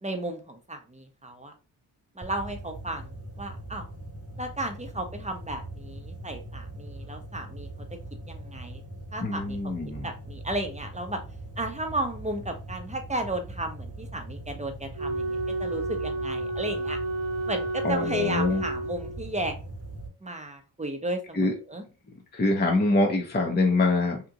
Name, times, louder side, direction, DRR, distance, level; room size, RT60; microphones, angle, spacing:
voice 1, 0.0-1.5 2.2-3.1 3.4-3.9 4.4-7.7 8.3-8.8 9.1-9.7 10.0-11.2 11.6-17.0 17.5-19.7 20.2-21.8, right 1 dB, 15° right, 5 dB, 0.8 m, -34 dB
sound 1, 2.2-20.1, right 1 dB, 30° right, 1.3 m, -41 dB
voice 2, 9.2-10.1 17.8-18.6 21.3-21.5 22.3-24.2, left 2 dB, 20° left, 1 dB, 0.7 m, -24 dB
Wind instrument woodwind instrument, 14.9-19.4, right 2 dB, 55° right, 0.7 m, -31 dB
2.9 x 2.5 x 3.6 m, 0.33 s
cardioid pair, 65°, 50 cm